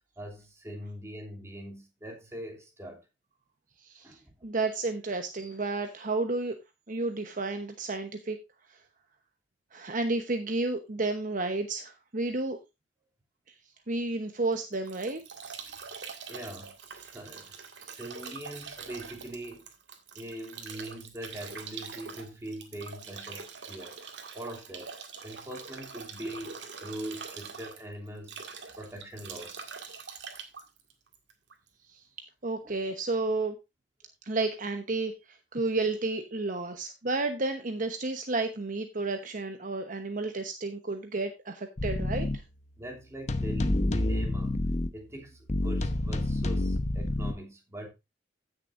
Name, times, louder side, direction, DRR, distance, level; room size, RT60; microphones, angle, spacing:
voice 1, 0.2-3.0 4.0-4.3 15.6-15.8 16.3-17.6 17.9-19.7 20.1-23.9 24.3-24.9 25.2-28.4 28.8-29.7 32.6-32.8 42.8-44.6 44.9-47.9, right 1 dB, 15° right, 2.8 m, -42 dB
voice 2, 4.4-6.5 6.9-8.4 9.7-12.6 13.9-15.2 32.4-33.5 34.2-35.1 35.5-42.3, right 3 dB, 50° right, 1.0 m, -31 dB
Bathtub (filling or washing) / Drip / Trickle dribble, 14.4-31.7, right 5 dB, 80° right, 2.0 m, -44 dB
sound 1, 41.8-42.4 43.3-44.9 45.5-47.3, left 1 dB, 40° left, 0.9 m, -28 dB
16.0 x 6.8 x 2.6 m
head